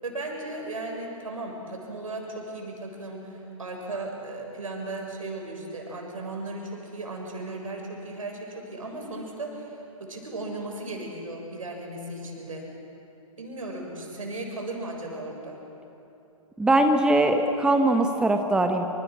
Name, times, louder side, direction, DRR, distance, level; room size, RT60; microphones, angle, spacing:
voice 1, 0.0-12.7 13.4-15.6, right 2 dB, 70° right, 1 dB, 7.1 m, -36 dB
voice 2, 16.6-18.9, right 2 dB, 5° right, 5 dB, 1.4 m, -21 dB
28.0 x 27.0 x 6.4 m, 2.9 s
figure-of-eight pair, 120°, 18 cm